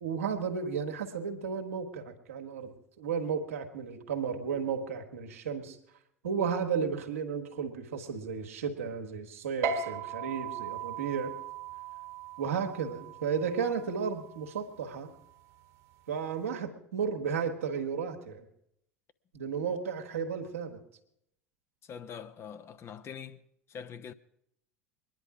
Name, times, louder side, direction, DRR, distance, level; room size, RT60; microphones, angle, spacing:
voice 1, 0.0-5.8 6.2-11.3 12.4-15.1 16.1-18.4 19.3-20.8, right 6 dB, 75° right, 1.7 m, -33 dB
sound 1, 9.6-16.4, right 6 dB, 50° right, 1.6 m, -39 dB
voice 2, 21.8-23.4 23.7-24.1, left 7 dB, 35° left, 0.9 m, -43 dB
22.0 x 10.5 x 4.9 m
figure-of-eight pair, 75°, 7 cm